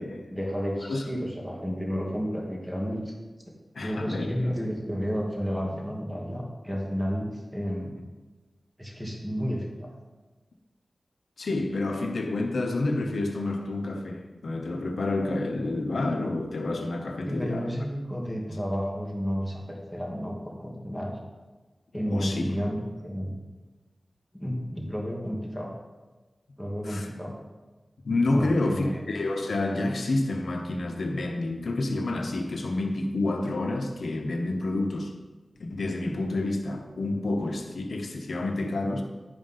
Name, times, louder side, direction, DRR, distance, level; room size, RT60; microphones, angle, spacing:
voice 1, 0.3-3.1 3.8-8.0 8.8-9.9 17.2-21.2 21.9-23.3 24.3-25.7 26.6-27.3 28.4-29.0, equal, 5° right, -2 dB, 2.3 m, -31 dB
voice 2, 3.7-4.3 11.4-17.7 22.1-22.4 26.8-27.1 28.0-35.1 35.6-39.0, left 2 dB, 85° left, 4 dB, 1.0 m, -29 dB
11.0 x 5.2 x 5.6 m, 1.2 s
cardioid pair, 50°, 0 cm